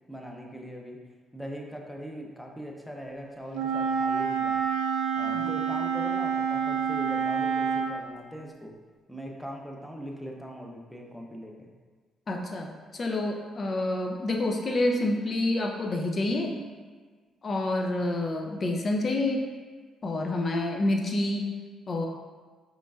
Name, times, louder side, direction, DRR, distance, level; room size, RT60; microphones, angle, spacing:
voice 1, 0.1-1.0 1.3-4.6 5.1-8.7 9.1-11.7, equal, 5° left, 0 dB, 0.7 m, -40 dB
Wind instrument woodwind instrument, 3.5-8.0, right 7 dB, 80° right, 0.3 m, -27 dB
voice 2, 12.3-16.6 17.4-19.5 20.0-21.5 21.9-22.1, left 2 dB, 45° left, 2 dB, 0.6 m, -28 dB
5.1 x 3.2 x 2.4 m, 1.5 s
supercardioid pair, 55°, 0 cm